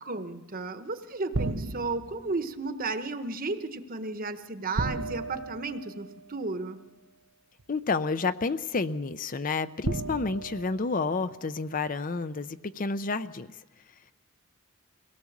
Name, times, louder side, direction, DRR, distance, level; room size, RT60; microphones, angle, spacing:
voice 1, 0.0-6.8, right 3 dB, 45° right, 9 dB, 1.1 m, -33 dB
sound 1, 1.3-2.3 4.8-6.4 7.6-7.7 9.8-11.6, right 3 dB, 75° right, 0.9 m, -34 dB
voice 2, 7.7-13.5, left 4 dB, 40° left, 12 dB, 0.6 m, -30 dB
24.0 x 17.5 x 7.3 m, 1.2 s
head